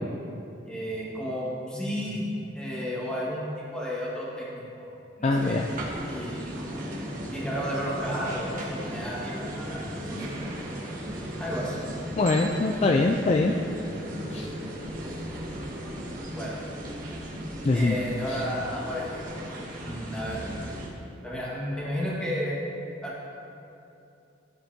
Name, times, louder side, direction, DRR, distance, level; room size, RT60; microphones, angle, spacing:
voice 1, 0.6-4.9 5.2-5.6 6.1-6.5 7.3-9.8 10.1-10.3 11.4-11.8 16.3-16.6 17.7-19.3 19.8-20.5 21.2-22.6 23.0-23.1, equal, 5° left, -6 dB, 1.5 m, -32 dB
voice 2, 5.2-5.7 12.2-13.5 14.3-14.5 17.6-18.0 18.3-18.4, left 3 dB, 35° left, 2 dB, 0.3 m, -23 dB
sound 1, 5.3-20.9, right 1 dB, 45° right, 1.3 m, -36 dB
13.0 x 7.3 x 2.8 m, 2.7 s
head